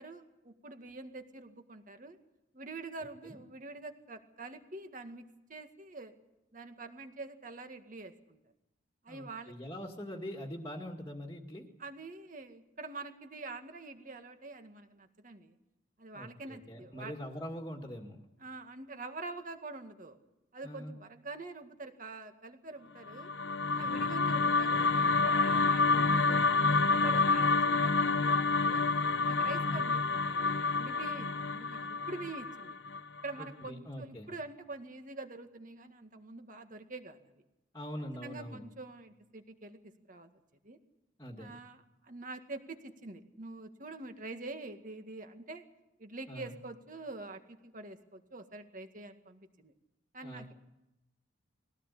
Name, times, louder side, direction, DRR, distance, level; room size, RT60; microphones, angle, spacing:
voice 1, 0.0-2.2 2.5-6.1 6.5-8.4 9.0-9.5 11.8-15.6 16.0-17.1 18.4-20.2 20.5-23.3 23.7-28.9 29.2-32.8 33.2-37.2 38.2-40.3 40.6-40.8 41.4-45.6 46.0-49.7 50.1-50.5, right 3 dB, 40° right, 6 dB, 2.0 m, -46 dB
voice 2, 9.1-11.6 16.1-18.2 20.6-20.9 23.8-24.2 29.6-29.8 33.4-34.3 37.7-38.6 41.2-41.5 46.3-46.5 50.2-50.5, equal, 15° left, 1 dB, 2.0 m, -43 dB
sound 1, 23.1-33.4, left 4 dB, 65° left, 1.0 m, -28 dB
22.0 x 17.0 x 8.4 m, 0.92 s
head